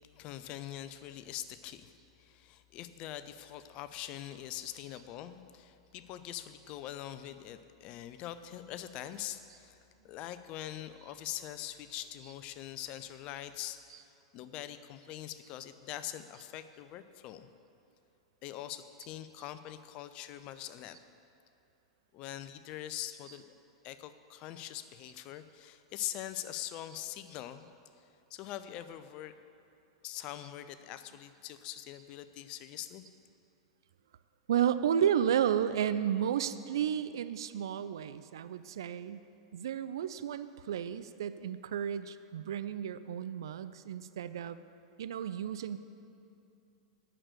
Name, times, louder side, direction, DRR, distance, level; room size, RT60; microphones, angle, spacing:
voice 1, 0.1-9.8 10.0-14.0 14.3-17.5 18.4-21.0 22.1-23.5 23.8-27.7 28.0-28.1 28.3-29.3 30.0-33.0, left 12 dB, 40° left, 11 dB, 0.6 m, -43 dB
voice 2, 34.5-39.2 39.5-44.6 45.0-45.8, right 9 dB, 65° right, 13 dB, 0.4 m, -32 dB
8.8 x 6.5 x 8.2 m, 2.6 s
figure-of-eight pair, 95°, 3 cm